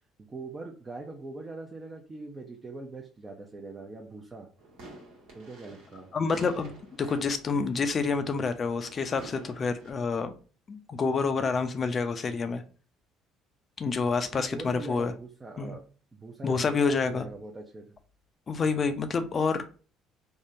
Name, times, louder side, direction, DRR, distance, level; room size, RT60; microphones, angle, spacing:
voice 1, 0.2-4.5 5.3-6.1 14.3-15.8 16.1-17.9, right 3 dB, 25° right, 1 dB, 0.6 m, -42 dB
sound 1, 4.6-9.9, right 1 dB, 80° right, 1.2 m, -49 dB
voice 2, 6.1-10.3 10.7-12.6 13.8-15.1 15.6-15.8 16.4-17.3 18.5-19.7, left 4 dB, 40° left, 9 dB, 0.5 m, -28 dB
3.6 x 2.1 x 2.6 m, 0.37 s
supercardioid pair, 75°, 0 cm